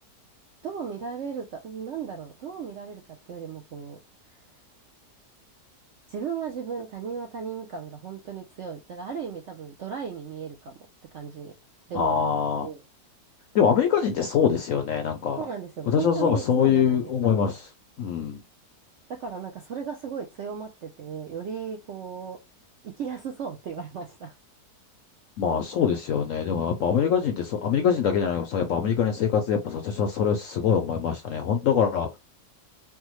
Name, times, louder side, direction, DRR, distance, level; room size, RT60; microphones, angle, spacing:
voice 1, 0.6-3.0 3.3-4.0 6.1-10.7 11.1-11.5 11.9-12.2 12.6-12.8 15.4-17.4 19.1-22.4 23.0-24.3 26.6-27.0, right 7 dB, 70° right, 0.7 m, -36 dB
voice 2, 11.9-12.7 13.5-15.4 15.9-17.7 18.0-18.4 25.4-32.1, left 7 dB, 70° left, 0.8 m, -24 dB
3.4 x 2.1 x 3.0 m
omnidirectional pair, 1.8 m